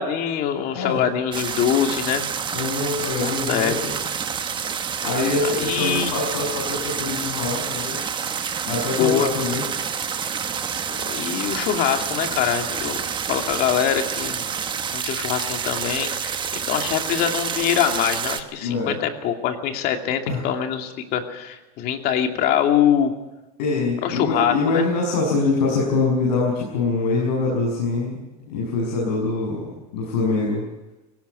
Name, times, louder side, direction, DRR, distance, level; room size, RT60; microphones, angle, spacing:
voice 1, 0.0-2.3 3.2-3.8 5.6-6.1 8.9-9.3 10.9-13.0 13.3-14.4 14.9-23.1 24.0-24.9, left 9 dB, 50° left, 5 dB, 2.6 m, -23 dB
voice 2, 0.7-1.1 2.5-4.0 5.0-8.1 8.7-9.7 10.1-10.3 18.6-19.0 20.3-20.4 23.6-28.2 28.5-30.6, left 3 dB, 80° left, -3 dB, 6.9 m, -24 dB
sound 1, 1.3-18.4, right 7 dB, 25° right, 1.2 m, -28 dB
18.0 x 18.0 x 9.3 m, 1.0 s
supercardioid pair, 135°, 21 cm